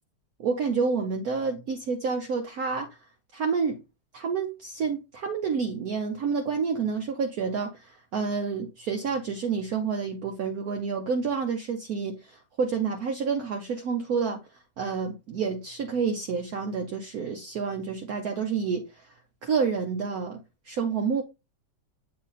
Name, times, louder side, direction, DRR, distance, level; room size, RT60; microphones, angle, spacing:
voice 1, 0.4-2.9 3.3-3.8 4.1-12.2 12.6-14.4 14.8-19.0 19.4-21.2, right 5 dB, 65° right, 1.1 m, -29 dB
7.7 x 3.2 x 4.0 m
omnidirectional pair, 1.9 m